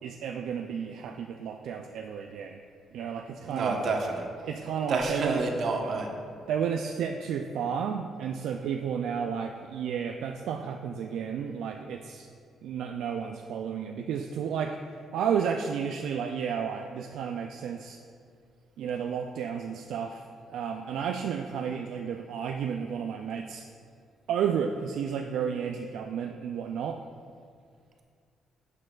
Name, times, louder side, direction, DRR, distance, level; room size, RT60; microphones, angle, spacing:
voice 1, 0.0-2.6 2.9-3.8 4.5-5.4 6.5-12.3 12.6-14.8 15.1-18.0 18.8-23.6 24.3-27.0, right 7 dB, 80° right, 4 dB, 0.3 m, -32 dB
voice 2, 3.5-4.3 4.9-6.1, right 3 dB, 60° right, 1 dB, 1.0 m, -29 dB
11.0 x 6.6 x 2.4 m, 2.2 s
cardioid pair, 90°, 0 cm